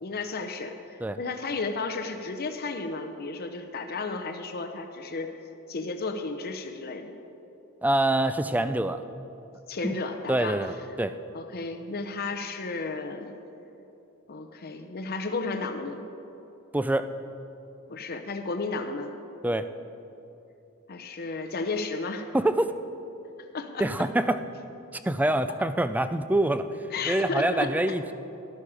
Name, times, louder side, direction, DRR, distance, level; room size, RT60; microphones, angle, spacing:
voice 1, 0.0-5.3 5.7-7.1 9.7-10.6 11.3-13.4 14.3-16.0 17.9-19.1 20.9-22.3 23.5-23.9 26.9-27.7, left 3 dB, 45° left, 6 dB, 0.7 m, -33 dB
voice 2, 7.8-9.0 9.8-9.9 10.3-11.2 16.7-17.1 19.4-19.7 22.3-22.7 23.8-24.4 25.0-26.7 27.0-28.1, right 1 dB, 5° right, 11 dB, 0.4 m, -25 dB
13.0 x 12.0 x 4.9 m, 2.9 s
head